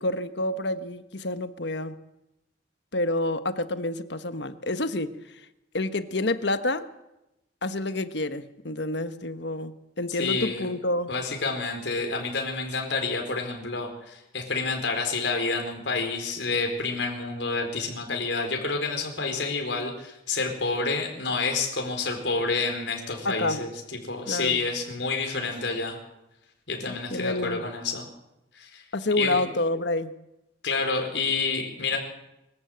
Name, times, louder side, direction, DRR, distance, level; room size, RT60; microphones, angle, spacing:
voice 1, 0.0-1.9 2.9-5.2 5.7-6.9 7.6-11.1 23.2-23.6 24.3-24.6 27.1-27.6 28.9-30.2, left 2 dB, 70° left, 11 dB, 1.3 m, -28 dB
voice 2, 10.2-10.7 11.1-23.7 24.0-26.0 26.7-28.1 28.5-28.8 29.2-29.4 30.6-32.0, left 4 dB, 85° left, 3 dB, 4.5 m, -29 dB
24.0 x 14.5 x 8.0 m, 0.90 s
head